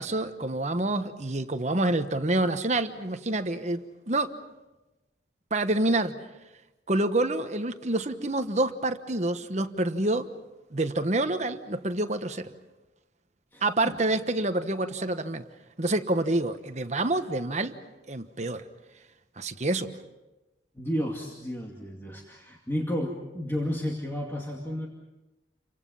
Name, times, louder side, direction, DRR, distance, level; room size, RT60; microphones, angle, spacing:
voice 1, 0.0-4.3 5.5-6.2 6.9-10.3 10.7-12.5 13.6-15.4 15.8-17.7 18.1-18.6 19.4-19.9, right 2 dB, 40° right, 9 dB, 1.2 m, -27 dB
voice 2, 13.5-14.0 20.8-24.9, equal, 15° left, -1 dB, 2.3 m, -32 dB
30.0 x 25.0 x 5.6 m, 1.1 s
head